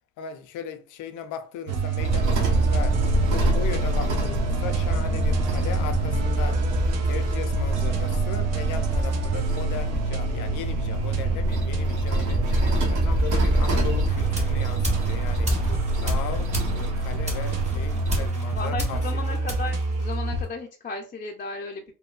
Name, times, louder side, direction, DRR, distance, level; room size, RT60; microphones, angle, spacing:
voice 1, 0.2-3.0 3.3-6.6 7.0-12.5 12.9-15.5 16.0-19.4, left 7 dB, 85° left, 0.5 m, -37 dB
sound 1, 1.7-20.4, right 3 dB, 60° right, 0.6 m, -28 dB
sound 2, 2.0-18.3, right 1 dB, 90° right, 1.0 m, -26 dB
sound 3, 14.0-20.6, left 1 dB, 20° right, 0.9 m, -33 dB
voice 2, 15.4-16.2 18.5-21.8, left 3 dB, 30° left, 0.4 m, -35 dB
2.9 x 2.1 x 2.3 m
cardioid pair, 90°, 30 cm